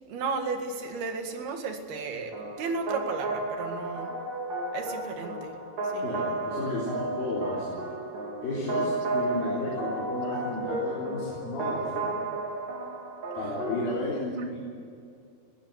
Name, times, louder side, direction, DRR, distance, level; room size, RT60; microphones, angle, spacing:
voice 1, 0.1-4.1 4.7-5.6 5.8-6.1 13.4-13.6, right 4 dB, 85° right, 5 dB, 4.0 m, -34 dB
sound 1, 2.3-13.9, right 2 dB, 65° right, 5.7 m, -33 dB
voice 2, 6.0-7.9 8.4-12.1 13.4-14.6, left 2 dB, 70° left, -5 dB, 5.7 m, -33 dB
20.0 x 17.5 x 8.1 m, 2.4 s
omnidirectional pair, 4.3 m